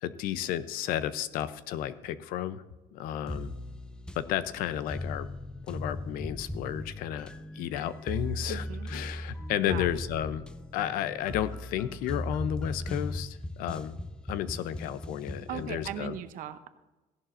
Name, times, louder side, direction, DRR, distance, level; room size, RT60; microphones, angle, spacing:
voice 1, 0.0-2.6 2.9-3.5 4.2-5.3 5.7-10.4 10.7-14.0 14.3-16.2, left 11 dB, 80° left, 14 dB, 0.7 m, -32 dB
sound 1, 3.3-16.1, left 1 dB, 5° left, 0.5 m, -38 dB
voice 2, 8.5-8.9 9.6-9.9 15.5-16.7, right 10 dB, 65° right, 11 dB, 0.8 m, -38 dB
15.5 x 11.0 x 2.6 m, 1.1 s
cardioid pair, 125°, 15 cm